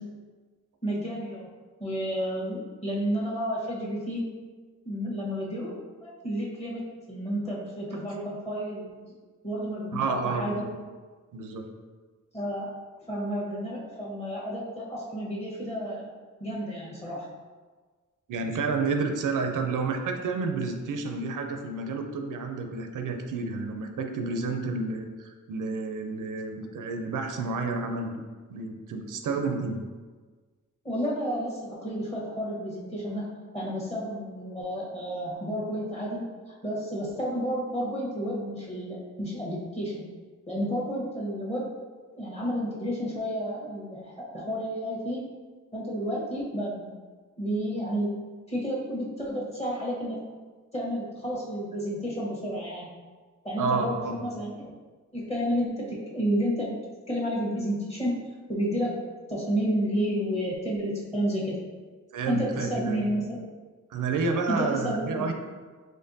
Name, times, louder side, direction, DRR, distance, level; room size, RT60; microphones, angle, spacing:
voice 1, 0.8-1.5 1.8-4.3 4.8-5.7 6.0-9.1 9.4-10.6 12.3-12.7 13.1-16.1 16.4-17.3 30.8-36.3 36.6-40.1 40.5-41.7 42.1-45.2 45.7-46.9 47.4-48.2 48.5-50.2 50.7-52.9 53.4-54.7 55.1-56.7 57.1-58.2 58.5-58.9 59.3-61.6 62.3-63.4 64.5-65.3, equal, 20° left, -5 dB, 1.1 m, -31 dB
voice 2, 9.9-10.7 11.3-11.7 18.3-28.1 28.5-29.8 53.6-54.2 62.1-63.1 63.9-65.3, right 4 dB, 85° right, 5 dB, 0.5 m, -30 dB
4.2 x 3.2 x 2.7 m, 1.4 s
wide cardioid pair, 105°, 30 cm